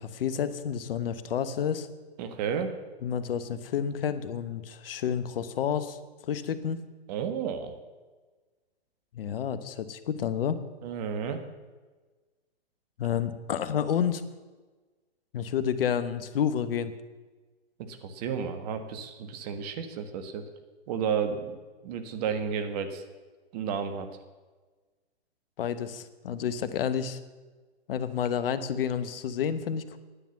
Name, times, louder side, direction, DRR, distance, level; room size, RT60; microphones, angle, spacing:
voice 1, 0.0-1.9 3.0-6.0 6.3-6.8 9.1-10.6 13.0-14.2 15.3-16.9 25.6-27.2 27.9-30.0, left 8 dB, 60° left, 12 dB, 1.1 m, -30 dB
voice 2, 2.2-2.7 7.1-7.8 10.8-11.4 17.9-20.5 20.9-21.5 21.8-23.0 23.5-24.1, right 7 dB, 40° right, 8 dB, 1.4 m, -32 dB
10.0 x 9.1 x 7.0 m, 1.3 s
hypercardioid pair, 135°, 32 cm